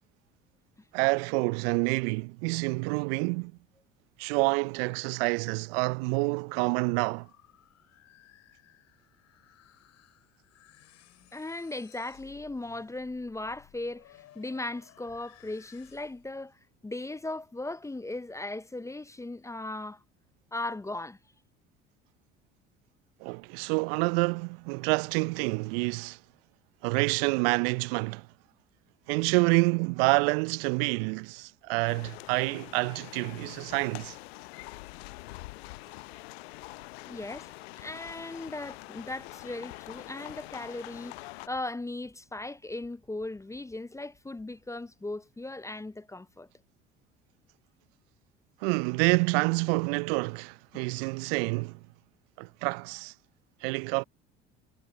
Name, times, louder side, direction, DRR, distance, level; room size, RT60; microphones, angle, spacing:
voice 1, 0.9-3.5 4.2-7.3 23.2-26.2 26.8-28.3 29.1-34.2 48.6-51.8 52.4-53.1 53.6-54.0, right 31 dB, 65° right, 0.6 m, -28 dB
sound 1, 6.3-16.4, left 14 dB, 55° left, 6.0 m, -59 dB
voice 2, 11.3-16.6 16.8-20.0 20.5-21.2 37.1-37.5 37.8-46.5, left 2 dB, 10° left, 0.6 m, -38 dB
sound 2, 31.9-41.5, left 22 dB, 70° left, 0.7 m, -45 dB
hypercardioid pair, 60°, 32 cm